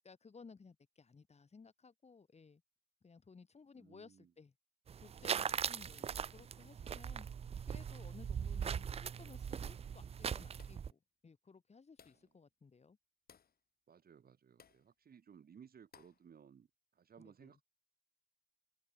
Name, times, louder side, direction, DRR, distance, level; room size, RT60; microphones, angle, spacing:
voice 1, 0.0-2.6 3.0-4.5 5.0-7.3 7.7-13.0 17.2-17.6, left 4 dB, 35° left, 7.4 m, -59 dB
voice 2, 3.8-4.3 13.9-16.7 17.0-17.6, right 7 dB, 50° right, 3.6 m, -60 dB
sound 1, 4.9-10.9, right 7 dB, 30° right, 0.4 m, -40 dB
sound 2, 10.6-11.0 12.0-12.3 13.3-13.6 14.6-14.9 15.9-16.3, left 7 dB, 50° left, 3.6 m, -63 dB
cardioid pair, 90°, 20 cm